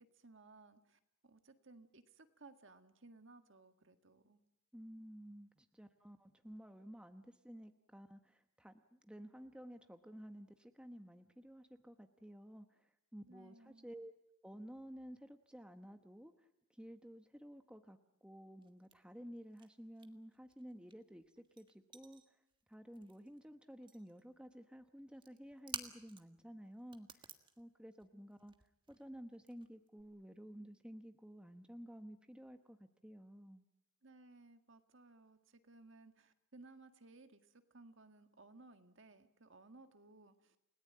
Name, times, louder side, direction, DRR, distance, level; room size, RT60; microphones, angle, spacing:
voice 1, 0.0-4.4 13.3-13.9 34.0-40.6, right 3 dB, 55° right, 8 dB, 1.8 m, -61 dB
voice 2, 4.7-14.1 14.4-22.4 22.7-27.3 27.6-28.5 28.9-33.6, equal, 5° right, 7 dB, 1.0 m, -53 dB
sound 1, 18.6-19.7 19.9-23.4 23.7-24.2 25.1-26.4 26.7-30.0, right 6 dB, 20° right, 1.6 m, -52 dB
29.5 x 18.5 x 8.7 m, 0.85 s
head